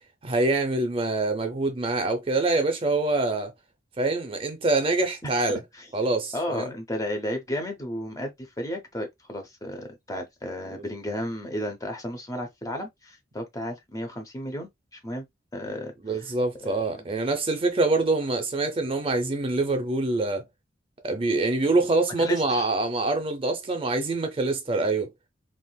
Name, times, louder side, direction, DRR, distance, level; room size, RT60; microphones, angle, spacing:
voice 1, 0.2-3.5 4.0-5.6 5.9-6.7 10.8-10.9 16.0-20.4 21.0-25.1, right 2 dB, 30° right, 0.5 m, -25 dB
voice 2, 6.3-15.2 15.5-16.3 16.6-17.1 22.2-22.7, left 1 dB, 20° left, 0.7 m, -33 dB
3.5 x 2.4 x 2.2 m
head